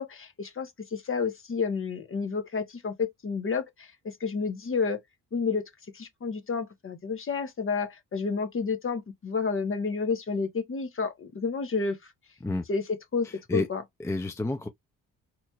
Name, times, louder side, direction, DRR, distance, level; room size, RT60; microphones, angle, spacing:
voice 1, 0.0-5.0 5.3-12.1 12.7-13.3 13.5-13.8, left 5 dB, 40° left, 1.1 m, -30 dB
voice 2, 14.0-14.7, left 2 dB, 10° left, 0.5 m, -29 dB
4.2 x 3.0 x 2.4 m
cardioid pair, 100°, 33 cm